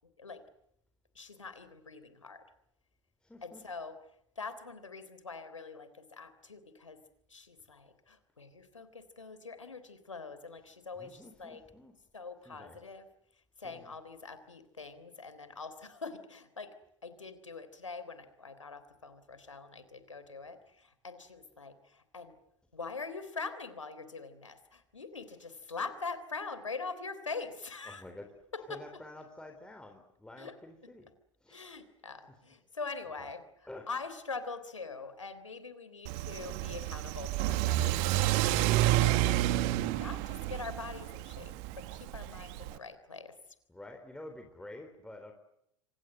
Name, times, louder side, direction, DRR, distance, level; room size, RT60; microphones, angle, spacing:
voice 1, 1.2-2.4 3.4-4.0 4.4-7.0 7.3-11.6 12.1-13.1 13.6-16.7 17.0-22.4 22.7-28.0 28.5-28.8 30.4-30.5 31.5-33.4 33.9-39.4 40.0-43.3, left 4 dB, 85° left, 12 dB, 3.6 m, -43 dB
voice 2, 3.2-3.6 10.7-11.9 12.5-12.8 13.6-13.9 27.9-28.3 28.7-31.1 31.4-31.7 33.2-33.3 33.7-33.9 43.7-45.3, left 1 dB, 5° left, 4 dB, 4.0 m, -49 dB
Car / Accelerating revving vroom, 36.1-42.8, right 15 dB, 50° right, 1.8 m, -30 dB
27.0 x 26.5 x 7.9 m, 0.76 s
figure-of-eight pair, 85°, 16 cm